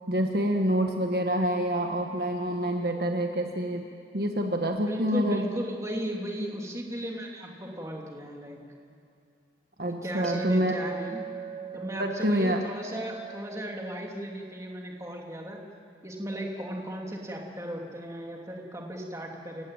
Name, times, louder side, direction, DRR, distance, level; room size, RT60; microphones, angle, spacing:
voice 1, 0.1-3.8 4.1-5.5 9.8-10.7 12.0-12.6, equal, 55° right, 3 dB, 1.5 m, -27 dB
voice 2, 4.9-8.6 9.9-11.2 11.7-15.6 16.0-19.6, equal, 15° right, 0 dB, 2.9 m, -35 dB
Chink clink, 10.2-14.7, right 7 dB, ahead, 2.0 m, -41 dB
29.5 x 15.0 x 9.0 m, 2.5 s
head